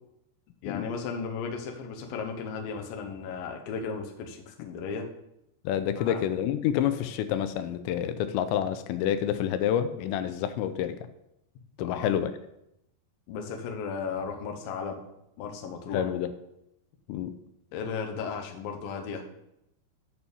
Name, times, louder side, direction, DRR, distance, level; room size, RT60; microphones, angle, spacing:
voice 1, 0.6-5.1 6.0-6.2 11.8-12.1 13.3-15.0 15.4-16.1 17.7-19.2, left 5 dB, 65° left, 4 dB, 2.5 m, -35 dB
voice 2, 5.7-11.0 11.8-12.3 15.9-16.3 17.1-17.3, left 10 dB, 90° left, 10 dB, 2.9 m, -28 dB
11.0 x 4.4 x 7.0 m, 0.83 s
omnidirectional pair, 5.0 m